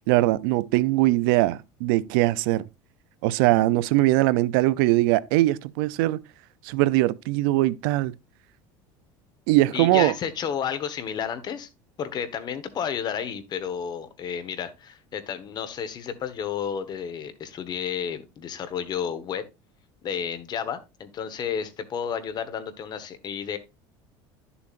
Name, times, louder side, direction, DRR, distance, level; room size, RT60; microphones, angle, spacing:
voice 1, 0.0-2.6 3.2-6.2 6.6-8.1 9.5-10.1, right 17 dB, 80° right, 0.5 m, -21 dB
voice 2, 9.7-11.7 12.0-19.4 20.0-23.6, left 7 dB, 35° left, 1.3 m, -31 dB
11.0 x 7.1 x 2.5 m
cardioid pair, 135°, 11 cm